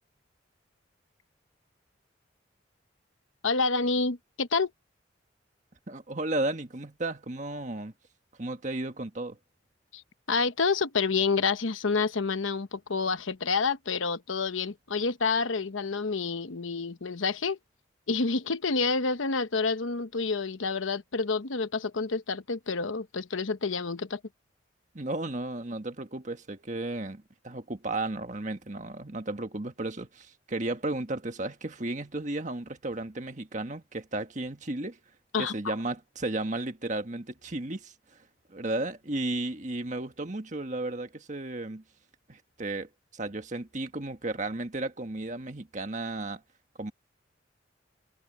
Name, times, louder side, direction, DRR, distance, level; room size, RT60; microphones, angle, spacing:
voice 1, 3.4-4.7 9.9-10.0 10.3-17.6 18.1-24.2 35.3-35.7, left 4 dB, 85° left, 1.0 m, -28 dB
voice 2, 5.9-7.9 8.4-9.4 24.9-35.0 35.4-37.9 38.5-41.8 42.3-46.4 46.8-46.9, right 2 dB, 40° right, 1.6 m, -34 dB
head